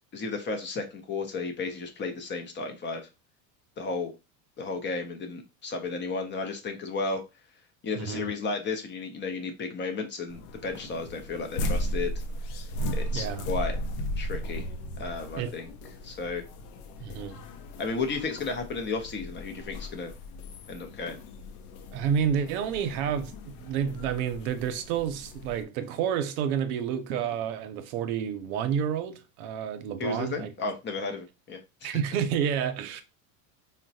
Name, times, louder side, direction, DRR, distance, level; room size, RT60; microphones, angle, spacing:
voice 1, 0.1-3.0 3.8-4.1 4.6-7.2 7.8-12.1 12.9-13.8 14.2-14.7 15.0-15.7 16.0-16.4 17.8-20.1 20.7-21.2 30.0-32.0, left 4 dB, 25° left, 0.5 m, -33 dB
voice 2, 8.0-8.3 12.8-13.5 15.4-15.5 17.0-17.4 21.9-30.5 31.8-33.0, right 8 dB, 90° right, 0.7 m, -30 dB
sound 1, 10.3-25.6, equal, 80° left, 0.6 m, -36 dB
3.9 x 2.1 x 2.6 m
supercardioid pair, 135°, 43 cm